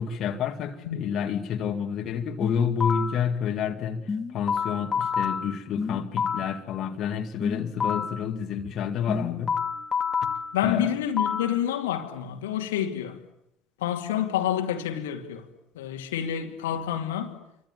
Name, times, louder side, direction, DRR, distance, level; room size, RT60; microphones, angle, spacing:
voice 1, 0.0-9.6 10.6-10.9, left 7 dB, 45° left, 2.2 m, -29 dB
sound 1, 2.4-3.3 4.1-6.6 7.4-8.3 9.1-11.6, left 6 dB, 25° left, 2.3 m, -29 dB
voice 2, 10.5-13.2 13.8-15.5 15.8-17.4, left 10 dB, 70° left, 2.3 m, -28 dB
28.5 x 24.5 x 7.4 m
figure-of-eight pair, 60°, 0 cm